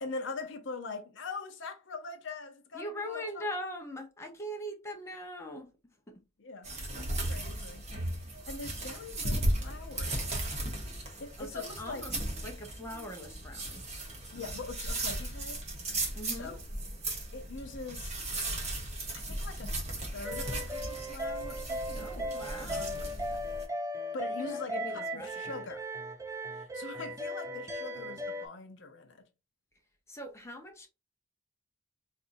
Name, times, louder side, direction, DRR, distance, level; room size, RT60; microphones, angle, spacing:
voice 1, 0.0-3.4 6.4-7.9 8.5-10.5 11.2-12.3 14.3-15.6 16.4-16.6 17.3-18.9 19.1-19.8 20.1-23.4 24.1-25.8 26.5-29.3, left 3 dB, 60° left, 0.6 m, -43 dB
voice 2, 2.7-6.2 11.4-12.1 12.4-13.8 16.1-16.6 22.0-23.0 24.3-25.7 30.1-30.9, equal, 15° left, 0.7 m, -41 dB
sound 1, 6.6-23.6, right 1 dB, 35° right, 0.9 m, -36 dB
sound 2, 20.2-28.5, equal, 15° right, 0.3 m, -37 dB
4.2 x 2.5 x 2.6 m
head